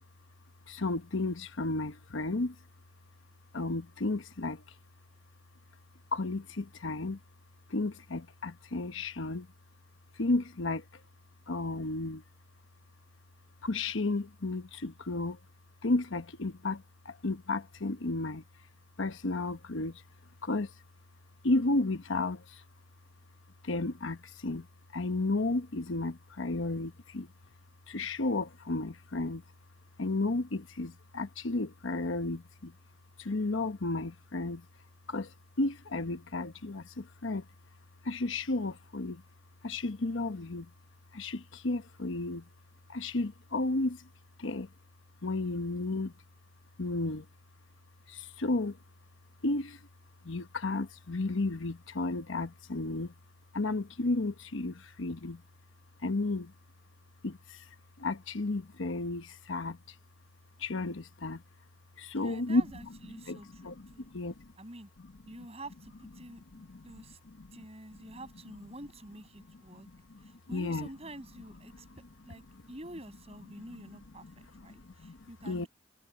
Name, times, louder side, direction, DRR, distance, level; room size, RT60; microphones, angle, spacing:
voice 1, 0.7-2.5 3.5-4.6 6.1-7.2 7.7-9.5 10.2-10.8 11.5-12.2 13.6-15.4 15.8-18.4 19.0-20.0 20.4-20.7 21.4-22.6 23.6-24.7 24.9-27.3 27.9-29.4 30.0-32.7 33.2-34.6 35.1-35.3 35.6-37.4 38.0-39.2 39.6-40.7 41.1-42.4 42.9-44.0 44.4-44.7 45.2-46.1 46.8-47.2 48.1-48.8 49.4-49.8 50.2-53.1 53.5-55.4 56.0-56.5 57.2-57.6 58.0-59.8 60.6-61.4 62.0-62.7 63.3-64.5 66.5-66.9 67.4-67.6 69.9-70.9 72.5-72.6 73.7-73.8 74.2-74.7 75.0-75.2 75.4-75.7, left 2 dB, 80° left, 1.1 m, -33 dB
voice 2, 62.1-64.1 64.6-64.9 65.3-67.2 67.5-69.9 70.2-71.9 72.2-75.7, right 1 dB, 30° right, 6.7 m, -48 dB
head